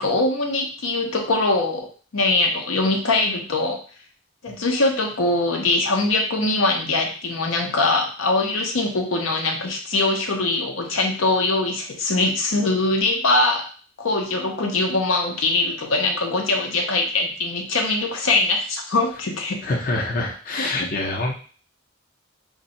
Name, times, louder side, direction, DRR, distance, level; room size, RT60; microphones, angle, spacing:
voice 1, 0.0-3.8 4.4-13.7 14.0-19.6 20.6-20.7, left 2 dB, 85° left, 2 dB, 0.6 m, -22 dB
voice 2, 19.6-21.4, left 2 dB, 45° left, -1 dB, 0.6 m, -25 dB
2.6 x 2.2 x 3.9 m, 0.40 s
head